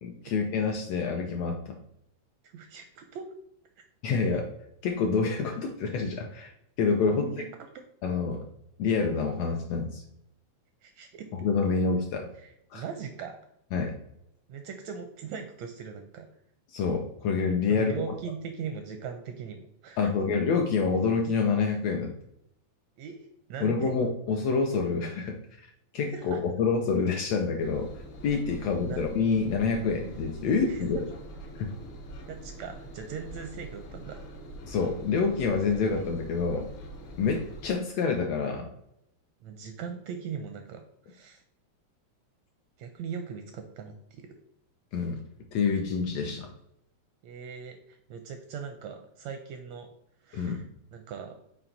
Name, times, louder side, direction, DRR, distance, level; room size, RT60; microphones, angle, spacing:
voice 1, 0.0-1.8 4.0-4.5 4.8-6.5 6.8-7.4 8.0-8.4 8.8-10.0 11.3-12.3 12.7-12.8 13.7-14.0 16.7-17.9 20.0-22.1 23.6-27.9 28.2-31.0 31.6-31.7 34.6-36.7 37.2-38.7 44.9-45.2 45.5-46.5 50.3-50.6, left 5 dB, 80° left, 2 dB, 1.5 m, -27 dB
voice 2, 2.4-3.3 7.1-7.5 10.8-11.3 12.4-13.4 14.5-16.3 17.7-20.1 23.0-23.2 23.5-24.0 26.0-26.4 28.8-29.0 30.7-30.9 32.3-34.2 39.4-41.4 42.8-44.3 47.2-49.9 50.2-50.7 50.9-51.4, right 6 dB, 80° right, 5 dB, 1.6 m, -40 dB
Engine, 27.6-37.8, right 1 dB, 65° left, 1.3 m, -44 dB
6.0 x 4.5 x 3.9 m, 0.77 s
omnidirectional pair, 3.5 m